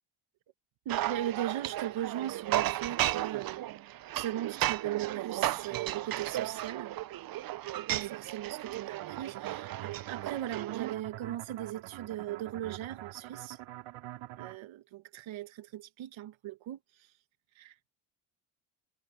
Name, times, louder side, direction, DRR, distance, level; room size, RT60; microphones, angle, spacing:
voice 1, 0.8-3.6 4.1-7.0 7.7-13.6 14.4-16.8 17.6-17.9, right 12 dB, 70° right, 1.3 m, -38 dB
sound 1, 0.9-10.9, right 14 dB, 45° right, 0.5 m, -34 dB
sound 2, 8.9-14.6, right 14 dB, 85° right, 3.7 m, -45 dB
cardioid pair, 100°, 49 cm